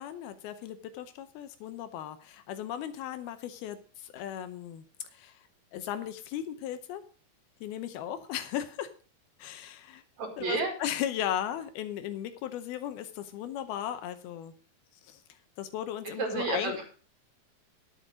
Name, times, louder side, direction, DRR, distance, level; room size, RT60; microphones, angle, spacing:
voice 1, 0.0-4.8 5.1-5.4 5.7-7.0 7.6-8.9 9.4-10.0 10.4-14.5 15.1-15.2 15.6-16.8, left 10 dB, 75° left, 10 dB, 2.6 m, -36 dB
voice 2, 10.2-10.7 16.2-16.8, right 3 dB, 50° right, 3 dB, 2.8 m, -31 dB
10.5 x 8.2 x 4.9 m, 0.39 s
omnidirectional pair, 4.6 m